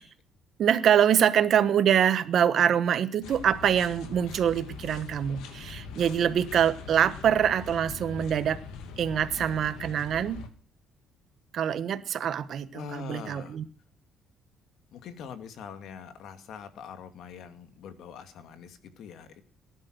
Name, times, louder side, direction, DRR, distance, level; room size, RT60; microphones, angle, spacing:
voice 1, 0.6-8.6 9.0-10.4 11.5-13.6, right 9 dB, 50° right, 13 dB, 1.4 m, -24 dB
sound 1, 3.2-10.5, left 5 dB, 85° left, 2.3 m, -42 dB
voice 2, 12.7-13.6 14.9-19.4, left 7 dB, 65° left, 10 dB, 2.3 m, -43 dB
18.5 x 11.0 x 6.5 m, 0.39 s
cardioid pair, 135°, 0 cm